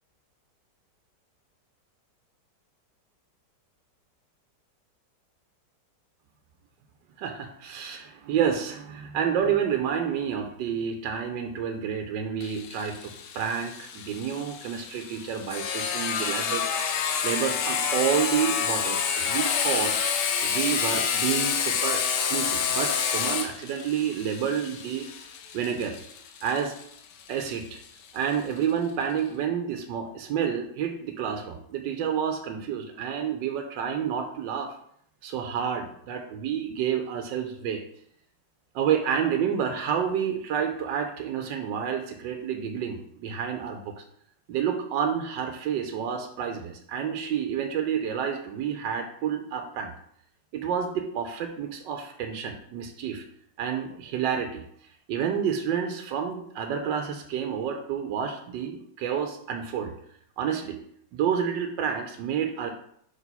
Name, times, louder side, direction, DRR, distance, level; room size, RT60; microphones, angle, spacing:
voice 1, 7.2-16.6 17.2-19.9 20.4-25.1 25.5-26.0 26.4-26.7 27.3-27.8 28.1-34.7 35.2-37.8 38.7-44.0 44.5-49.9 50.5-53.2 53.6-54.6 55.1-59.9 60.4-60.8 61.1-62.7, right 8 dB, 85° right, 4 dB, 1.3 m, -29 dB
Sawing, 12.4-27.8, left 7 dB, 75° left, 1.3 m, -29 dB
5.1 x 3.4 x 5.4 m, 0.68 s
omnidirectional pair, 1.9 m